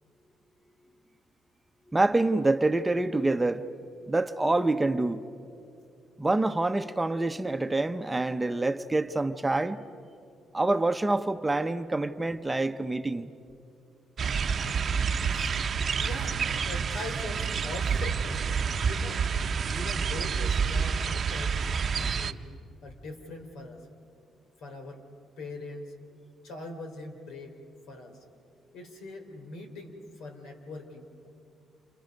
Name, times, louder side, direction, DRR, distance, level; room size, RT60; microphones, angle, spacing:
voice 1, 1.9-3.6 4.1-5.2 6.2-9.8 10.5-13.3 15.8-15.9, right 2 dB, 15° right, 0.9 m, -26 dB
sound 1, 14.2-22.3, right 6 dB, 50° right, 0.8 m, -28 dB
voice 2, 16.0-18.3 18.8-19.3 19.7-21.6 22.1-22.4 22.8-23.9 24.6-25.0 25.4-25.9 26.4-27.6 27.9-28.2 28.7-31.3, left 2 dB, 80° left, 3.4 m, -41 dB
29.5 x 29.0 x 5.3 m
cardioid pair, 90°, 0 cm